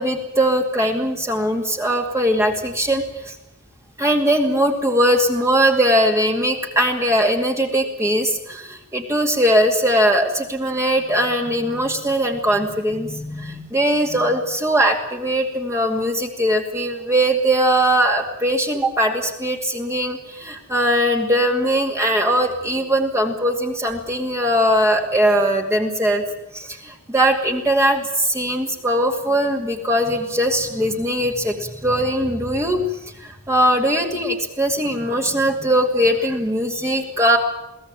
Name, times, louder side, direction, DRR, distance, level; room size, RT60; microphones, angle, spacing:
voice 1, 0.0-3.4 4.0-26.2 26.5-32.9 33.2-37.4, equal, 15° right, 2 dB, 2.4 m, -20 dB
22.5 x 17.0 x 9.0 m, 0.87 s
head